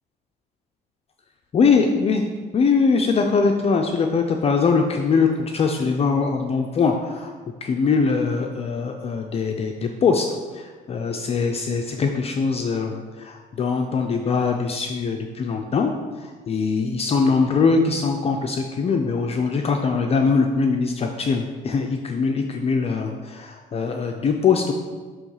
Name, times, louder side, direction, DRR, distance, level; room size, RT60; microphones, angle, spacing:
voice 1, 1.5-2.2 2.5-7.3 7.6-24.7, left 5 dB, 35° left, 3 dB, 0.5 m, -22 dB
6.2 x 3.0 x 5.4 m, 1.4 s
cardioid pair, 110°, 17 cm